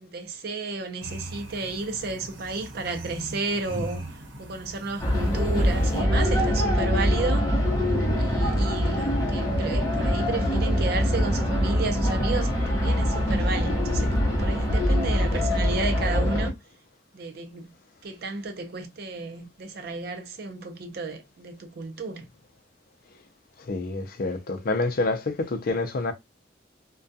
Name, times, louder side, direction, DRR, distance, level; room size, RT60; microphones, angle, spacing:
voice 1, 0.0-4.0 4.4-7.5 8.2-16.5 17.1-17.7 18.0-22.3, right 3 dB, 60° right, 0.5 m, -32 dB
sound 1, 1.0-6.0, right 1 dB, 90° right, 0.9 m, -40 dB
sound 2, 5.0-16.5, equal, 20° left, 0.7 m, -24 dB
voice 2, 23.7-26.1, left 2 dB, 50° left, 0.4 m, -27 dB
2.2 x 2.2 x 2.6 m
head